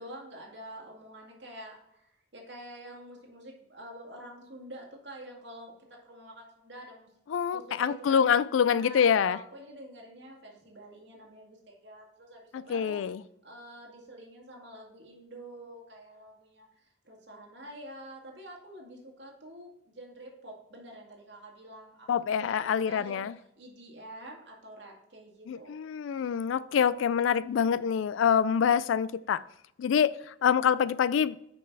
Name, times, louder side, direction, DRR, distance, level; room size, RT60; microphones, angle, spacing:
voice 1, 0.0-5.8 6.0-7.1 7.5-8.2 8.8-13.0 13.4-22.1 22.4-25.8, right 1 dB, 65° right, 2.0 m, -47 dB
voice 2, 7.3-9.4 12.5-13.2 22.1-23.3 25.5-29.4 29.8-31.4, left 7 dB, 85° left, 0.3 m, -26 dB
6.6 x 5.4 x 4.6 m
head